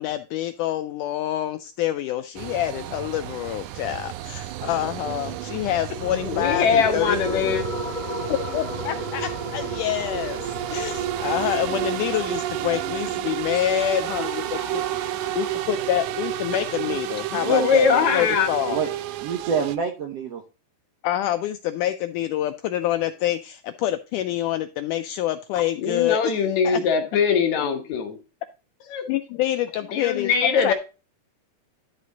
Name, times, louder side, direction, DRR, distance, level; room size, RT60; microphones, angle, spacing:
voice 1, 0.0-7.5 8.3-14.8 15.4-17.9 18.1-18.8 21.0-26.3 26.6-26.8 29.1-30.7, left 12 dB, 85° left, 1.8 m, -27 dB
sound 1, 2.4-19.8, right 13 dB, 85° right, 1.8 m, -31 dB
sound 2, 5.5-16.5, left 2 dB, 30° left, 0.8 m, -36 dB
voice 2, 6.1-7.6 17.3-18.5 25.8-28.2 28.9-29.1 29.9-30.7, left 6 dB, 65° left, 2.1 m, -22 dB
voice 3, 13.8-15.6 18.7-18.9 19.2-20.4, right 6 dB, 65° right, 1.6 m, -30 dB
11.0 x 5.1 x 4.0 m
omnidirectional pair, 4.2 m